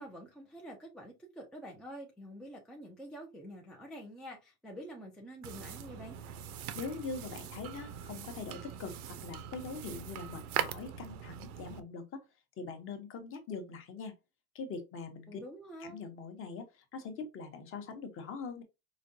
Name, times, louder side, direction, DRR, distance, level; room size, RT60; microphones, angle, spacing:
voice 1, 0.0-6.2 15.3-16.0, equal, ahead, 0.4 m, -47 dB
sound 1, 5.4-11.8, right 10 dB, 75° right, 0.8 m, -41 dB
voice 2, 6.7-12.2 12.6-14.1 14.5-15.4 15.8-16.7 16.9-18.6, left 4 dB, 30° left, 0.8 m, -42 dB
5.0 x 2.2 x 2.6 m
supercardioid pair, 135°, 43 cm